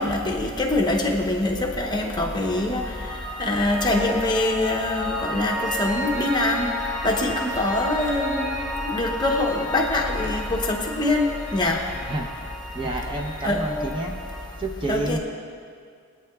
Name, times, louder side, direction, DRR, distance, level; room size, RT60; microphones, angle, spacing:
voice 1, 0.0-2.8 3.4-6.7 7.0-11.8 13.4-13.9 14.9-15.2, left 1 dB, 20° left, 1 dB, 0.9 m, -24 dB
Piano, 2.2-14.5, left 1 dB, ahead, 2.2 m, -32 dB
voice 2, 12.7-14.2 14.6-15.2, right 2 dB, 25° right, 0 dB, 0.8 m, -29 dB
22.5 x 9.0 x 2.4 m, 2.2 s
head